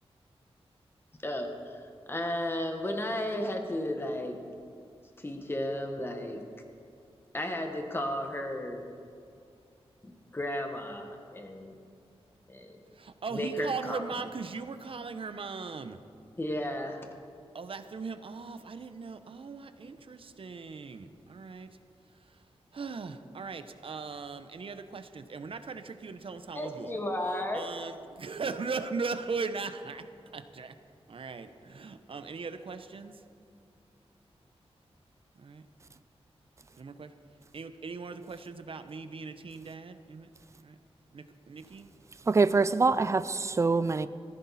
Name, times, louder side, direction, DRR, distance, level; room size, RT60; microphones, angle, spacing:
voice 1, 1.2-4.4 5.2-6.4 7.3-8.9 10.0-11.8 12.5-12.8 13.3-14.1 16.4-17.1 26.5-27.7, left 1 dB, 20° left, 1.5 m, -34 dB
voice 2, 13.0-16.0 17.5-21.7 22.7-27.0 27.5-30.0 30.3-30.7 31.1-33.2 35.4-35.6 36.8-37.1 37.5-40.3 40.6-40.8 41.1-41.9, right 4 dB, 60° right, 0.9 m, -39 dB
voice 3, 42.3-44.1, right 4 dB, 30° right, 0.4 m, -24 dB
18.5 x 15.5 x 4.2 m
wide cardioid pair, 120°, 11 cm